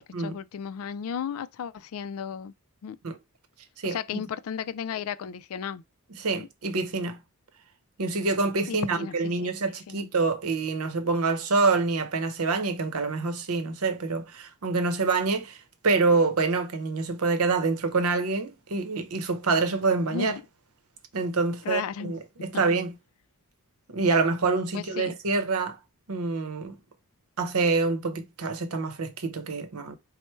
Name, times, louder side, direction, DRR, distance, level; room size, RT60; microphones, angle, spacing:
voice 1, 0.0-2.5 2.8-3.0 3.8-5.8 6.4-6.5 8.7-10.1 20.1-20.4 21.6-22.2 24.0-24.1 24.7-25.1, left 7 dB, 70° left, 0.3 m, -35 dB
voice 2, 6.2-7.2 8.0-15.6 15.8-20.3 21.1-22.9 23.9-25.8 26.1-26.8 27.4-30.0, right 3 dB, 75° right, 0.7 m, -26 dB
4.4 x 2.1 x 4.3 m
head